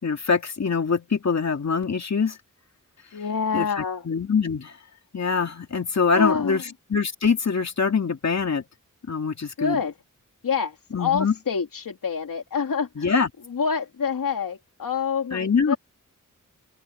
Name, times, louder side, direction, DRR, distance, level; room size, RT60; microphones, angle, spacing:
voice 1, 0.0-2.4 3.5-4.8 5.1-6.6 6.9-8.6 9.1-9.8 10.9-11.3 13.0-13.3 15.3-15.8, left 5 dB, 55° left, 2.5 m, -24 dB
voice 2, 3.1-4.1 6.1-6.6 9.6-9.9 10.4-13.1 13.5-15.8, left 6 dB, 85° left, 2.8 m, -27 dB
wide cardioid pair, 80°, 32 cm